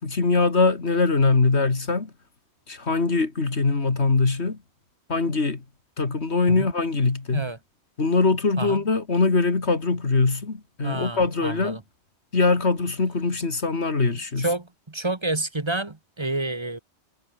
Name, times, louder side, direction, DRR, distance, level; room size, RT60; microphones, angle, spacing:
voice 1, 0.0-2.1 2.7-4.6 5.1-5.6 6.0-7.5 8.0-11.8 12.3-14.5, left 3 dB, 70° left, 2.8 m, -22 dB
voice 2, 10.8-11.8 14.4-16.8, right 2 dB, 25° right, 1.2 m, -29 dB
omnidirectional pair, 1.2 m